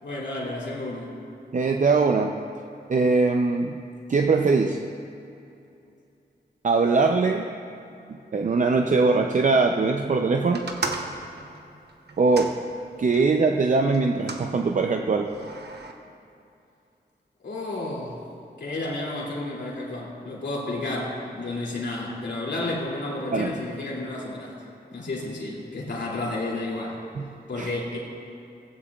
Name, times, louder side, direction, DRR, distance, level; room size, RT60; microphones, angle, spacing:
voice 1, 0.0-1.1 17.4-18.2 18.6-24.5 24.9-27.0 27.5-28.0, left 2 dB, 85° left, -4 dB, 2.7 m, -31 dB
voice 2, 1.5-2.3 2.9-3.8 4.1-4.8 6.6-7.5 8.1-10.7 12.2-12.5 13.0-15.3 23.3-23.6 27.1-27.3 27.6-27.7, right 4 dB, 45° right, 4 dB, 0.5 m, -21 dB
sound 1, 10.5-13.3 13.9-14.5 15.3-15.9, right 3 dB, 70° right, 1.0 m, -35 dB
16.0 x 16.0 x 2.4 m, 2.6 s
wide cardioid pair, 105°, 18 cm